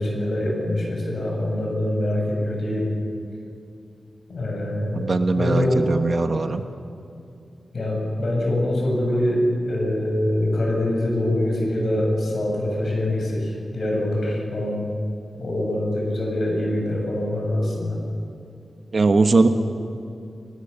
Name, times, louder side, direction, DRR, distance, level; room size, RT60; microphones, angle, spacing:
voice 1, 0.0-2.9 4.3-5.9 7.7-14.8 15.4-18.0, left 1 dB, 55° left, -1 dB, 7.5 m, -24 dB
voice 2, 4.9-6.6 18.9-19.5, right 3 dB, 45° right, 7 dB, 1.1 m, -20 dB
30.0 x 19.0 x 6.9 m, 2.5 s
wide cardioid pair, 155°, 0 cm